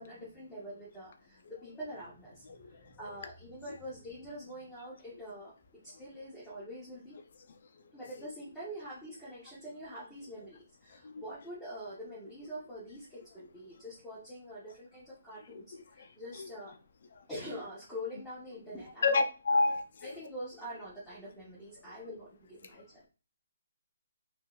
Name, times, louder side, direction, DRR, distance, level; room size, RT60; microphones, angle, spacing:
voice 1, 0.0-5.5 5.8-7.2 7.9-16.7 17.3-19.6 20.0-23.1, equal, 5° left, 0.9 m, -45 dB
voice 2, 2.5-3.2 7.8-7.9 8.2-8.3 11.0-11.2 16.0-16.1 16.4-16.5 17.2-17.3 19.0-20.1, left 3 dB, 50° left, 0.5 m, -30 dB
3.7 x 2.4 x 2.4 m
hypercardioid pair, 165°, 0 cm